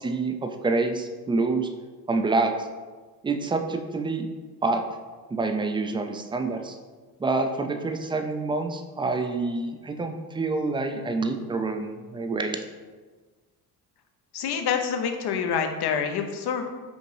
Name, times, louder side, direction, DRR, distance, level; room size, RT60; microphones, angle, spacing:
voice 1, 0.0-1.7 2.1-2.7 3.2-4.3 4.6-4.8 5.3-6.8 7.2-12.6, right 3 dB, 15° right, 6 dB, 0.3 m, -27 dB
voice 2, 14.3-16.8, left 7 dB, 60° left, 5 dB, 0.7 m, -27 dB
5.2 x 2.6 x 3.2 m, 1.4 s
supercardioid pair, 65°, 44 cm